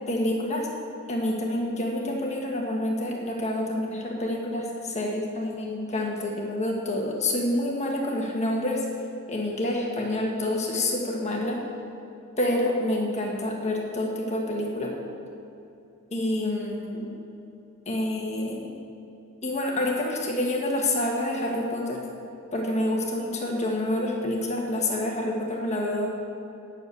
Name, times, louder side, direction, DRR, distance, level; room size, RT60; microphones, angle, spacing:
voice 1, 0.1-0.7 1.1-8.8 9.3-11.6 12.4-14.9 16.1-17.1 17.9-18.7 19.4-22.0 22.5-26.1, left 1 dB, 30° left, -1 dB, 1.4 m, -27 dB
10.5 x 6.8 x 8.2 m, 2.7 s
head